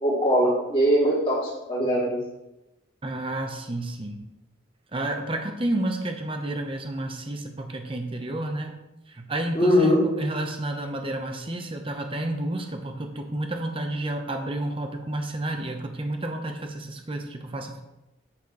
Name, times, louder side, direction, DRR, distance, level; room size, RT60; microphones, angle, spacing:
voice 1, 0.0-2.2 9.5-10.0, equal, 25° left, -6 dB, 2.7 m, -21 dB
voice 2, 3.0-4.2 4.9-8.7 9.1-17.8, right 1 dB, 25° right, 4 dB, 0.8 m, -30 dB
8.7 x 4.4 x 4.6 m, 0.95 s
head